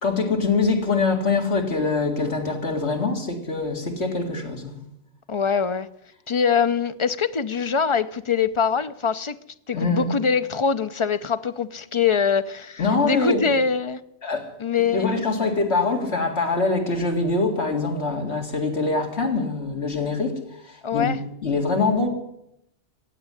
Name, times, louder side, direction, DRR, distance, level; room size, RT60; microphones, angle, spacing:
voice 1, 0.0-4.8 9.7-10.1 12.8-13.5 14.2-14.5 14.8-21.1 21.4-22.1, left 3 dB, 70° left, 2.5 m, -24 dB
voice 2, 5.3-5.9 6.3-9.3 9.7-14.0 14.6-15.1 20.8-21.2, left 6 dB, 35° left, 0.5 m, -23 dB
16.0 x 8.1 x 9.8 m
omnidirectional pair, 1.2 m